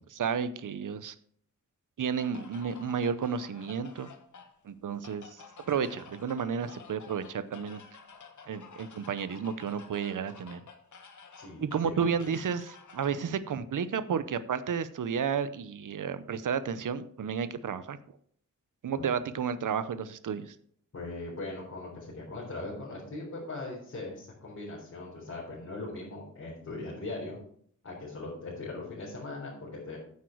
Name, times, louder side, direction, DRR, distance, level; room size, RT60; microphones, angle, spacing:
voice 1, 0.1-1.1 2.0-4.1 4.6-5.3 5.7-7.8 8.5-10.6 11.6-18.0 18.8-20.5, right 7 dB, 90° right, 13 dB, 0.8 m, -32 dB
sound 1, 2.2-13.3, left 5 dB, 70° left, 1.3 m, -51 dB
voice 2, 11.4-12.0 19.0-19.1 20.9-27.4 27.8-30.0, left 2 dB, 50° left, -6 dB, 3.9 m, -40 dB
9.5 x 8.3 x 4.6 m, 0.63 s
wide cardioid pair, 140°, 31 cm